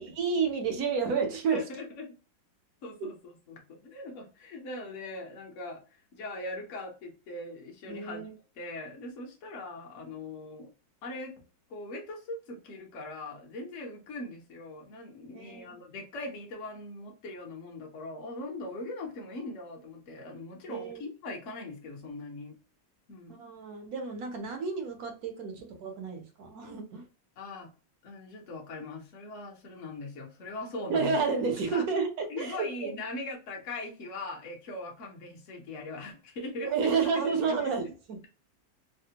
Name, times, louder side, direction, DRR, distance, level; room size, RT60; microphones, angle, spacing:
voice 1, 0.0-1.6 7.9-8.3 15.3-15.7 20.7-21.0 23.3-27.0 30.9-32.9 36.7-37.9, right 5 dB, 65° right, 4 dB, 1.0 m, -30 dB
voice 2, 1.5-2.1 2.8-8.3 8.6-10.7 11.0-11.3 11.7-22.6 23.1-23.3 27.4-27.7 28.0-31.2 31.7-31.8 32.3-36.7 37.1-37.7, left 2 dB, 55° left, 1 dB, 1.0 m, -40 dB
3.3 x 2.1 x 2.8 m, 0.35 s
omnidirectional pair, 2.0 m